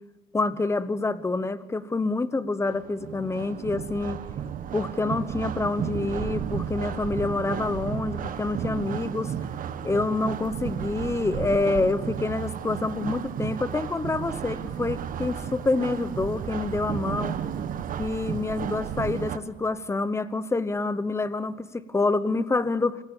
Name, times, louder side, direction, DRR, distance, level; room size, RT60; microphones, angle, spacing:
voice 1, 0.3-4.2 4.7-9.3 9.8-17.4 18.0-23.0, left 3 dB, 15° left, 15 dB, 1.0 m, -27 dB
sound 1, 2.7-19.4, right 8 dB, 55° right, 1.3 m, -33 dB
24.0 x 15.5 x 7.2 m, 1.2 s
cardioid pair, 110°, 17 cm